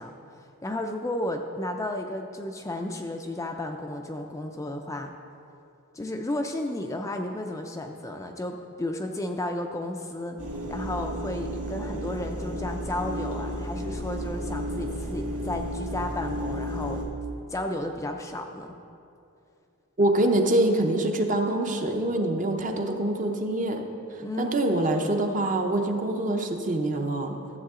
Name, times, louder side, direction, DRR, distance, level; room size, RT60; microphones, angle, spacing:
voice 1, 0.0-5.1 5.9-10.4 10.7-17.0 17.5-18.7 24.2-24.6, left 1 dB, 15° left, 4 dB, 0.4 m, -33 dB
sound 1, 10.4-17.0, equal, 70° right, 1.4 m, -33 dB
voice 2, 20.0-23.8 24.4-27.4, right 1 dB, 35° right, 4 dB, 0.7 m, -25 dB
13.0 x 7.5 x 3.7 m, 2.6 s
head